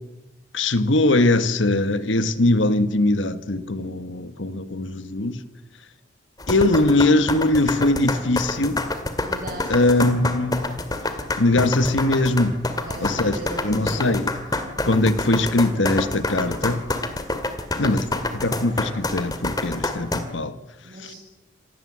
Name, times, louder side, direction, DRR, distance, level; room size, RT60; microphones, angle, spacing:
voice 1, 0.5-5.4 6.5-8.8 9.7-10.8 11.4-12.6 13.0-13.3 13.6-14.3 14.8-16.8 17.8-18.1 18.3-20.5 21.0-21.1, left 2 dB, 75° left, 1.5 m, -21 dB
sound 1, 6.4-20.2, left 2 dB, 20° left, 2.1 m, -27 dB
voice 2, 9.2-10.2 12.7-14.2 20.8-21.2, right 1 dB, 45° right, 7.2 m, -38 dB
26.5 x 19.5 x 7.6 m
head